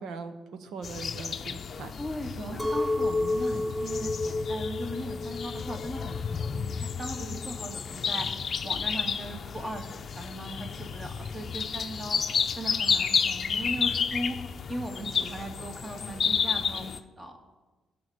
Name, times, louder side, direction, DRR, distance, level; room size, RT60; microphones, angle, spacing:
voice 1, 0.0-1.9 2.5-2.6 7.2-7.4, right 4 dB, 75° right, 9 dB, 1.1 m, -41 dB
sound 1, 0.8-17.0, left 6 dB, 50° left, 0.6 m, -31 dB
voice 2, 2.0-8.3 8.6-9.9 10.1-12.2 12.6-14.4 14.7-17.4, equal, 20° right, 3 dB, 2.0 m, -38 dB
Chink clink, 2.6-7.8, left 2 dB, 5° left, 0.6 m, -31 dB
15.5 x 5.9 x 6.4 m, 1.2 s
cardioid pair, 90°, 0 cm